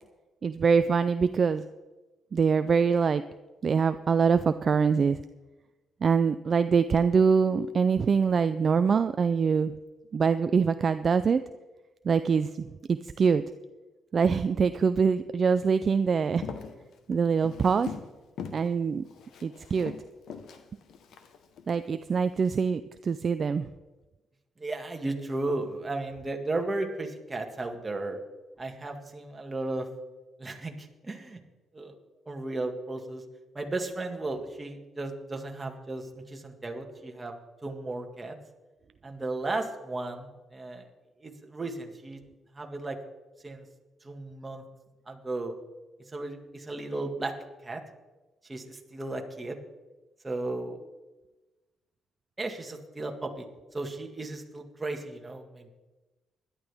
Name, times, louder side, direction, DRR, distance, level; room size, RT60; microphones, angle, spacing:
voice 1, 0.4-1.6 2.3-3.2 3.6-5.2 6.0-9.7 10.1-11.4 12.0-13.4 14.1-16.4 17.1-17.9 18.5-19.0 19.4-19.9 21.7-23.7, right 6 dB, 45° right, 11 dB, 0.4 m, -24 dB
Walk footsteps, 16.2-18.1 18.4-18.7 19.0-21.7 22.3-22.5, left 7 dB, 75° left, 1.2 m, -42 dB
voice 2, 24.6-28.2 28.6-29.9 30.4-31.4 31.7-32.0 32.3-33.2 33.5-37.3 37.6-38.4 39.0-40.9 41.2-42.2 42.5-43.0 43.4-43.7 44.0-44.6 45.1-45.6 46.1-47.3 47.6-47.8 48.4-49.6 50.2-50.8 52.4-53.5 53.7-55.7, right 2 dB, 20° right, 3 dB, 1.9 m, -35 dB
17.0 x 11.5 x 3.6 m, 1.1 s
cardioid pair, 90°, 0 cm